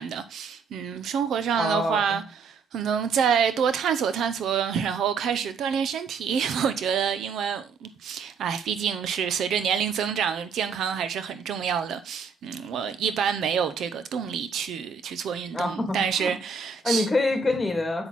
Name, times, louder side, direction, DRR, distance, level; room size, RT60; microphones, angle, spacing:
voice 1, 0.0-17.1, right 7 dB, 70° right, 0.8 m, -27 dB
voice 2, 1.5-2.2 15.5-16.3 16.8-18.1, left 2 dB, 15° left, 2.9 m, -26 dB
7.7 x 6.3 x 4.2 m
cardioid pair, 90°, 0 cm